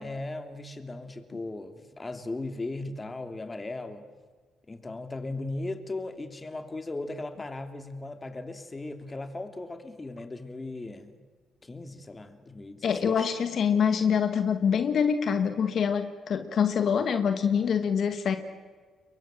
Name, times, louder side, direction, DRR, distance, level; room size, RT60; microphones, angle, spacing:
voice 1, 0.0-4.1 4.7-11.2 11.6-13.3, left 2 dB, 25° left, 7 dB, 3.0 m, -37 dB
voice 2, 12.8-18.4, left 7 dB, 60° left, 8 dB, 2.0 m, -25 dB
29.5 x 23.5 x 7.7 m, 1.5 s
cardioid pair, 90°, 0 cm